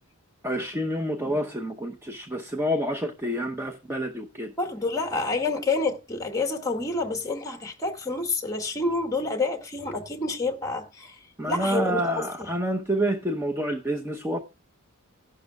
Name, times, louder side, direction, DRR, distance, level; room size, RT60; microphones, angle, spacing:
voice 1, 0.4-4.5 5.1-5.2 11.4-14.4, equal, 10° right, 0.8 m, -28 dB
voice 2, 4.6-11.1 11.5-12.0, left 3 dB, 15° left, 2.0 m, -28 dB
15.5 x 11.5 x 2.4 m
head